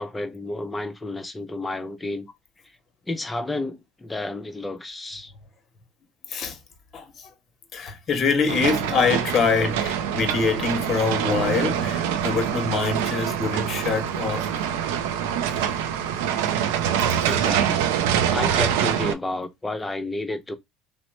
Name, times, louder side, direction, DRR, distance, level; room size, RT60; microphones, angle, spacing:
voice 1, 0.0-2.3 3.1-5.3 17.2-17.9 18.3-20.6, left 2 dB, 15° left, 0.5 m, -31 dB
voice 2, 7.7-14.6, left 5 dB, 45° left, 0.9 m, -24 dB
sound 1, 8.5-19.1, right 9 dB, 90° right, 0.4 m, -25 dB
3.0 x 2.0 x 2.9 m
supercardioid pair, 95°, 0 cm